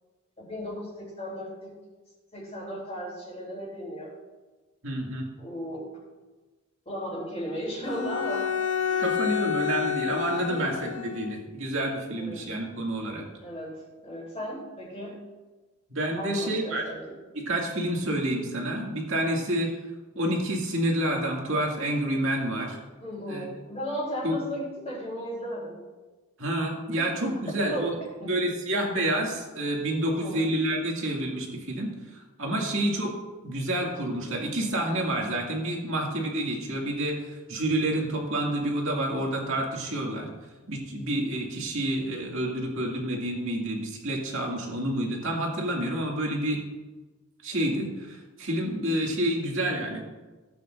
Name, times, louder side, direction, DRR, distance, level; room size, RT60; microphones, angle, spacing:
voice 1, 0.4-1.7 2.3-4.1 5.4-5.8 6.9-8.5 8.9-9.1 10.2-10.6 12.1-12.5 13.4-15.2 16.2-17.1 23.0-25.8 26.9-27.0 27.7-27.9 28.2-28.4 30.1-30.4, equal, 30° left, -10 dB, 3.5 m, -35 dB
voice 2, 4.8-5.3 9.0-13.2 15.9-16.8 17.4-19.7 20.1-22.8 23.3-23.5 24.2-24.4 26.4-27.9 28.2-33.2 33.4-40.3 40.7-46.6 47.4-50.1, right 1 dB, 60° right, -1 dB, 2.3 m, -29 dB
Bowed string instrument, 7.8-11.3, left 8 dB, 85° left, 1.2 m, -29 dB
17.0 x 8.7 x 2.6 m, 1.2 s
head